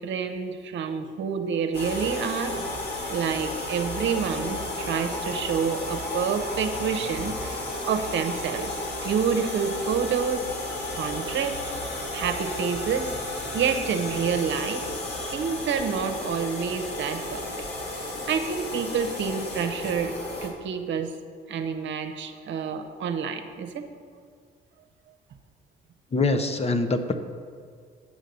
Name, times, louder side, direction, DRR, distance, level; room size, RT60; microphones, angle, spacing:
voice 1, 0.0-2.6 3.1-10.5 10.9-13.1 13.5-14.9 15.3-20.1 20.4-21.1 21.5-23.8, right 6 dB, 70° right, 6 dB, 0.8 m, -28 dB
sound 1, 1.7-20.5, left 1 dB, 55° left, 1.8 m, -33 dB
voice 2, 26.1-27.1, left 3 dB, 30° left, 8 dB, 0.7 m, -24 dB
8.5 x 6.4 x 5.4 m, 2.1 s
cardioid pair, 90°, 20 cm